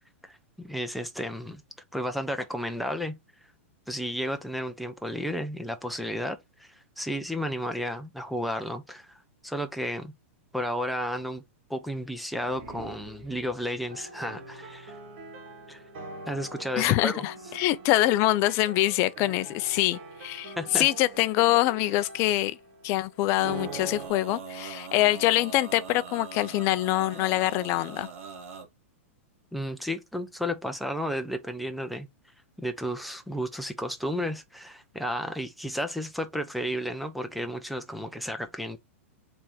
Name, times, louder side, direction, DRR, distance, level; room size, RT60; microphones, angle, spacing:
voice 1, 0.2-1.6 1.9-3.1 3.9-9.1 9.4-10.1 10.5-11.4 11.7-15.0 15.7-15.8 16.3-17.3 20.6-20.9 29.5-32.1 32.6-38.8, equal, ahead, 0.7 m, -32 dB
sound 1, 12.4-13.9, right 3 dB, 35° right, 2.0 m, -46 dB
sound 2, 13.9-24.1, right 2 dB, 55° right, 2.0 m, -43 dB
voice 2, 16.8-22.6 22.8-28.1, left 16 dB, 35° left, 0.5 m, -25 dB
Male singing, 23.3-28.7, right 5 dB, 75° right, 1.6 m, -41 dB
4.6 x 3.5 x 2.8 m
hypercardioid pair, 140°, 7 cm